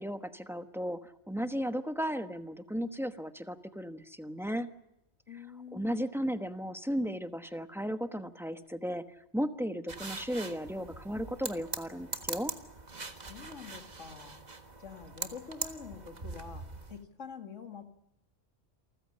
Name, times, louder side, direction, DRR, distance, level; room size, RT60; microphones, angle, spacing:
voice 1, 0.0-4.7 5.7-9.0 9.3-12.5, equal, ahead, 9 dB, 1.1 m, -35 dB
voice 2, 5.3-6.0 13.1-14.4 14.8-17.8, left 6 dB, 75° left, 7 dB, 2.4 m, -46 dB
sound 1, 9.9-17.0, right 3 dB, 35° right, 1.6 m, -42 dB
28.5 x 15.0 x 8.7 m, 0.88 s
omnidirectional pair, 1.3 m